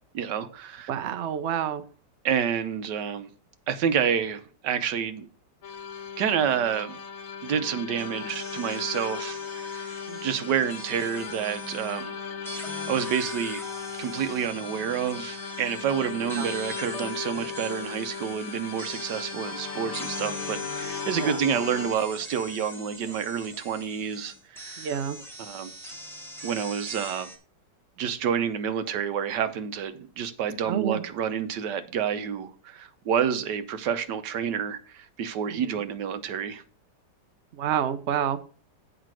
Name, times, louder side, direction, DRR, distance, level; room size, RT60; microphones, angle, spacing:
voice 1, 0.1-0.9 2.2-3.3 3.7-5.3 6.2-7.0 7.4-12.1 12.9-13.6 14.0-24.9 25.4-25.7 26.4-27.3 28.0-36.6, right 8 dB, 80° right, 1.4 m, -29 dB
voice 2, 0.9-1.8 10.1-10.3 16.3-16.5 21.2-21.4 24.8-25.2 30.7-31.0 35.5-35.8 37.5-38.4, right 9 dB, 55° right, 0.8 m, -29 dB
sound 1, 5.6-21.9, left 6 dB, 60° left, 1.3 m, -37 dB
sound 2, 8.0-12.1 12.4-27.4, equal, ahead, 1.4 m, -42 dB
8.2 x 5.0 x 6.2 m
omnidirectional pair, 1.8 m